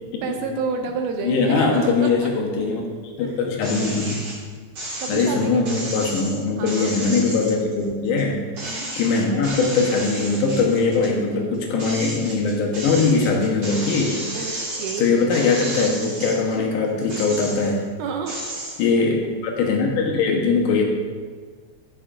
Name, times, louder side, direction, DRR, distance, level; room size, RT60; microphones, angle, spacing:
voice 1, 0.2-2.1 3.2-3.4 5.0-6.0 6.6-6.9 8.6-8.9 14.3-15.3 18.0-18.4, right 5 dB, 80° right, 4 dB, 1.9 m, -30 dB
voice 2, 1.2-2.9 3.2-4.2 5.1-8.4 8.7-14.6 15.0-17.9 18.8-20.8, left 4 dB, 75° left, 0 dB, 2.4 m, -21 dB
sound 1, 3.6-4.4 4.8-8.2 8.6-11.1 11.5-16.6 17.0-17.8 18.3-18.8, right 1 dB, 45° right, 2.8 m, -33 dB
12.0 x 5.6 x 2.5 m, 1.5 s
omnidirectional pair, 4.0 m